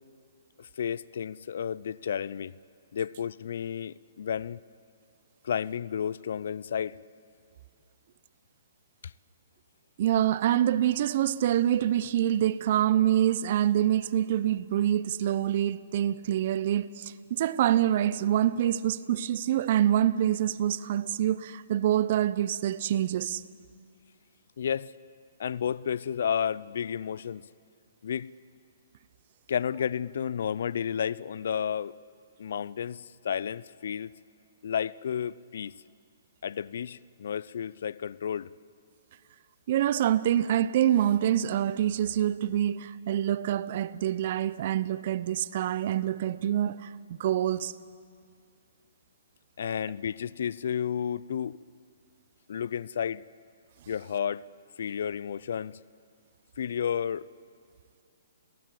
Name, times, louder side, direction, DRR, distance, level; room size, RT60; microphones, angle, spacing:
voice 1, 0.6-2.5 2.9-4.6 5.4-7.0 9.0-9.1 24.6-24.9 25.4-27.5 28.0-28.3 29.5-32.0 32.4-34.1 34.6-35.7 36.4-38.5 49.6-51.6 52.5-53.2 53.9-54.4 54.8-55.8 56.6-57.3, left 8 dB, 65° left, 0.5 m, -32 dB
voice 2, 10.0-23.4 39.7-47.7, right 11 dB, 50° right, 0.8 m, -26 dB
29.5 x 17.5 x 7.7 m
hypercardioid pair, 130°, 0 cm